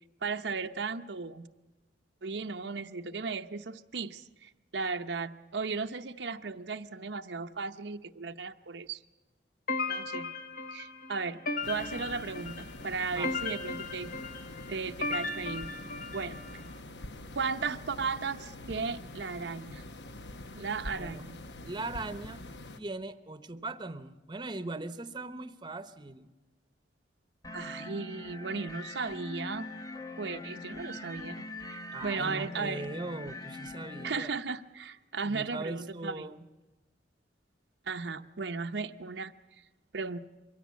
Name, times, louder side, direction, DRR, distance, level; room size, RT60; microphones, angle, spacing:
voice 1, 0.2-1.5 2.2-9.0 9.9-10.3 10.7-14.1 14.7-15.7 16.1-16.4 17.4-19.8 20.5-21.4 27.5-29.7 30.2-32.9 34.0-36.3 37.9-39.3 39.9-40.2, right 4 dB, 80° right, 7 dB, 0.8 m, -36 dB
sound 1, 9.7-16.6, left 3 dB, 55° left, 1.3 m, -36 dB
sound 2, 11.6-22.8, left 1 dB, 75° left, 1.1 m, -45 dB
voice 2, 21.6-22.4 22.8-26.3 31.9-34.3 35.2-36.4, right 2 dB, 25° right, 12 dB, 0.9 m, -39 dB
sound 3, 27.4-34.1, left 2 dB, 20° left, 1.0 m, -42 dB
23.0 x 16.5 x 8.4 m, 1.1 s
head